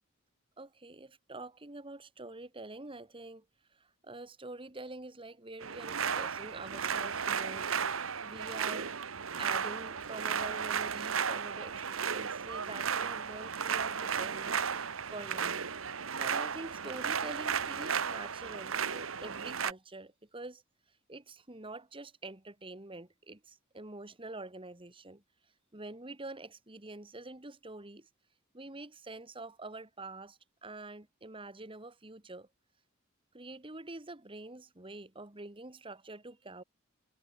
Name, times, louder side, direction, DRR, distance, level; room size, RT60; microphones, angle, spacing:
voice 1, 0.6-3.5 3.7-7.7 8.2-8.9 9.4-20.6 21.1-25.2 25.7-28.1 28.5-32.5 33.3-36.6, right 2 dB, 25° right, 1.8 m, -46 dB
sound 1, 5.6-19.7, right 7 dB, 80° right, 1.2 m, -34 dB
head